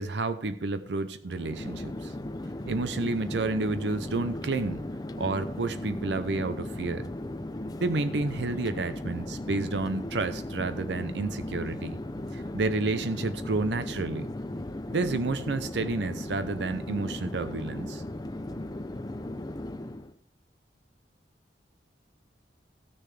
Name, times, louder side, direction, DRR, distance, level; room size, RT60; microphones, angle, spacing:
voice 1, 0.0-2.1 2.7-4.8 5.2-7.1 7.8-12.0 12.3-14.3 14.9-18.0, right 3 dB, 75° right, 12 dB, 0.6 m, -30 dB
Chatter / Fixed-wing aircraft airplane, 1.2-20.1, left 1 dB, 20° left, 0.5 m, -37 dB
16.0 x 6.6 x 3.3 m, 0.73 s
head